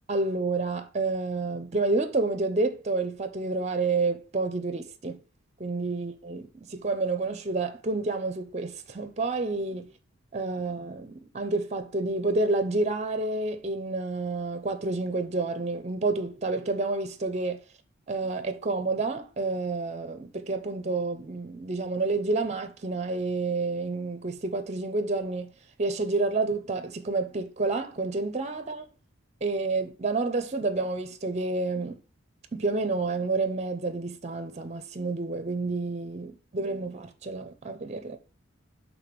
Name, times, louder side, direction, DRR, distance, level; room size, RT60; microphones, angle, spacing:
voice 1, 0.1-5.2 5.6-9.9 10.3-17.6 18.1-25.5 25.8-28.9 29.4-32.0 32.5-38.2, right 3 dB, 35° right, 0.6 m, -29 dB
5.0 x 3.7 x 5.1 m
head